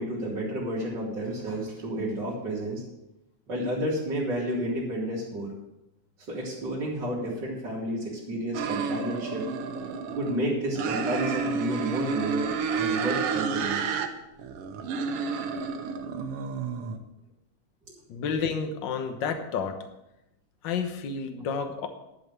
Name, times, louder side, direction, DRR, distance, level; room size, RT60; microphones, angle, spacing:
voice 1, 0.0-2.8 3.5-5.5 6.3-9.4 10.1-13.8, right 1 dB, 35° right, -8 dB, 2.8 m, -31 dB
sound 1, 8.5-10.4 10.7-14.1 14.4-17.0, right 5 dB, 70° right, 1.4 m, -30 dB
voice 2, 18.1-19.8 20.6-21.9, left 6 dB, 70° left, 7 dB, 1.0 m, -30 dB
11.0 x 6.1 x 8.1 m, 0.89 s
omnidirectional pair, 3.6 m